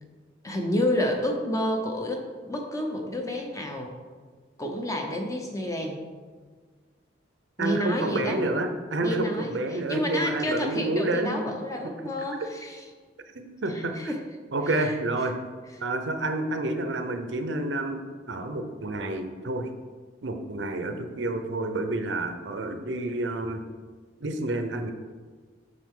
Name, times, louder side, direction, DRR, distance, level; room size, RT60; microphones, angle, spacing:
voice 1, 0.4-3.9 4.6-6.0 7.6-8.4 9.0-12.9 13.7-14.2 14.7-14.9, left 1 dB, 15° left, 2 dB, 0.8 m, -29 dB
voice 2, 7.6-11.4 13.4-14.1 14.5-15.3 15.8-18.0 18.3-19.7 20.2-23.6 24.2-24.9, right 2 dB, 70° right, 6 dB, 0.7 m, -29 dB
7.6 x 6.2 x 3.7 m, 1.5 s
head